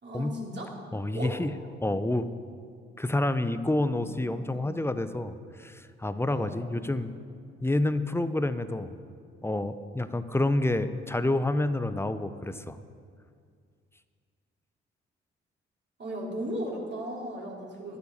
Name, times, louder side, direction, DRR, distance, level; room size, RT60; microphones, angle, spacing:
voice 1, 0.0-0.8 1.1-1.4 3.7-4.9 6.3-6.6 16.0-18.0, right 1 dB, 35° right, -3 dB, 3.6 m, -37 dB
voice 2, 0.9-1.5 1.8-2.3 3.0-5.3 5.6-7.2 7.6-9.0 9.4-12.8, left 1 dB, 10° left, 12 dB, 0.8 m, -28 dB
12.0 x 9.6 x 6.7 m, 2.2 s
figure-of-eight pair, 40°, 31 cm